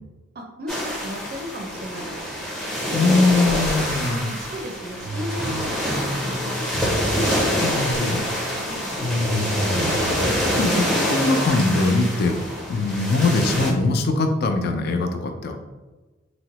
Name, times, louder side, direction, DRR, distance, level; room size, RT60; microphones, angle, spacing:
voice 1, 0.3-2.3 3.9-7.2 8.6-8.9, equal, 50° right, 2 dB, 0.4 m, -36 dB
sound 1, 0.7-13.7, equal, 5° left, 0.6 m, -26 dB
sound 2, 1.2-1.6 2.0-3.0 3.3-6.0 6.2-6.5 6.9-7.0, equal, 70° left, 0.8 m, -39 dB
voice 2, 2.9-4.2 7.6-8.4 9.0-12.3 12.7-15.5, left 3 dB, 55° left, 6 dB, 0.3 m, -22 dB
sound 3, 5.0-8.1 9.3-12.2, right 1 dB, 85° left, 1.1 m, -34 dB
3.6 x 2.0 x 2.8 m, 1.2 s
head